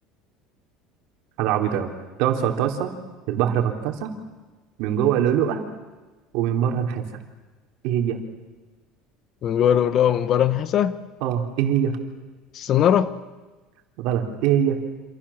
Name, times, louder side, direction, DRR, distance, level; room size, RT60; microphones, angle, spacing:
voice 1, 1.4-1.9 2.2-2.9 3.3-4.1 4.8-5.6 6.3-7.0 7.8-8.2 11.2-12.0 14.0-14.8, right 9 dB, 60° right, 3 dB, 3.9 m, -22 dB
voice 2, 9.4-11.0 12.5-13.1, left 9 dB, 35° left, 14 dB, 1.1 m, -20 dB
28.0 x 27.5 x 7.4 m, 1.2 s
cardioid pair, 165°, 0 cm